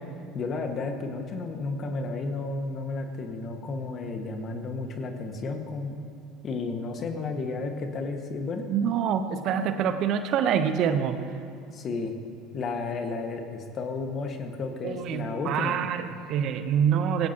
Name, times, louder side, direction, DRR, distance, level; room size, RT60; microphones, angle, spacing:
voice 1, 0.3-6.0 6.4-8.7 11.7-12.1 12.5-15.8, left 3 dB, 40° left, 5 dB, 1.7 m, -32 dB
voice 2, 8.7-11.2 14.8-17.3, right 8 dB, 55° right, 9 dB, 0.9 m, -26 dB
19.5 x 16.5 x 3.0 m, 2.5 s
hypercardioid pair, 75°, 0 cm